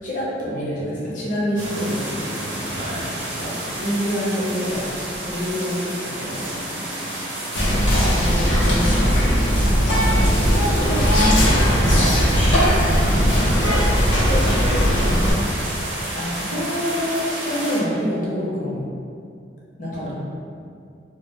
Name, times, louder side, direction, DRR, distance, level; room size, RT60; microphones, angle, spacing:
voice 1, 0.0-2.0 3.4-4.9 5.2-6.5 7.6-9.4 10.0-13.5 16.1-18.8 19.8-20.1, equal, 45° left, -7 dB, 0.6 m, -27 dB
sound 1, 1.5-17.8, right 1 dB, 90° right, 0.6 m, -30 dB
voice 2, 2.7-3.2 13.5-13.8 14.1-15.9 19.9-20.1, equal, 35° right, -3 dB, 0.4 m, -31 dB
Whispering, 7.6-15.3, equal, 85° left, 0.6 m, -18 dB
2.1 x 2.1 x 3.2 m, 2.4 s
head